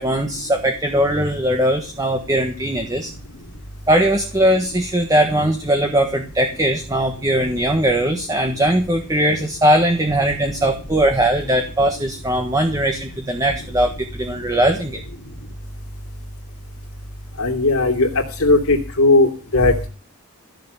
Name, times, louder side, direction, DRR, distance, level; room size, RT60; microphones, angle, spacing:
voice 1, 0.0-3.1 3.9-15.0, right 1 dB, 15° right, 4 dB, 1.4 m, -19 dB
voice 2, 17.4-19.9, left 2 dB, 70° left, -2 dB, 2.9 m, -17 dB
14.5 x 6.9 x 8.3 m, 0.37 s
head